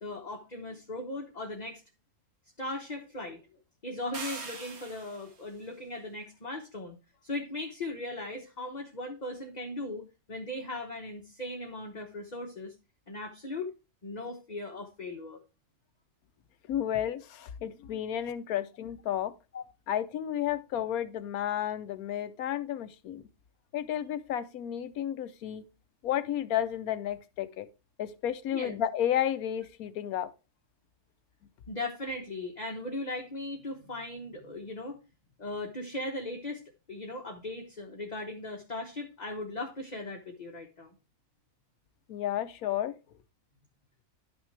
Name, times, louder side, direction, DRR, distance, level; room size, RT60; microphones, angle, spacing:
voice 1, 0.0-1.8 2.6-3.4 3.8-7.0 7.2-12.7 13.1-13.7 14.0-15.4 19.5-19.6 28.5-28.8 31.7-35.0 35.4-36.6 36.9-40.9, left 2 dB, 30° left, 1.1 m, -38 dB
sound 1, 4.1-5.4, right 4 dB, 70° right, 2.0 m, -41 dB
voice 2, 16.7-19.3 19.9-23.2 23.7-25.7 26.0-27.7 28.0-30.3 42.1-42.9, left 10 dB, 75° left, 1.2 m, -32 dB
11.0 x 6.1 x 3.3 m
omnidirectional pair, 1.6 m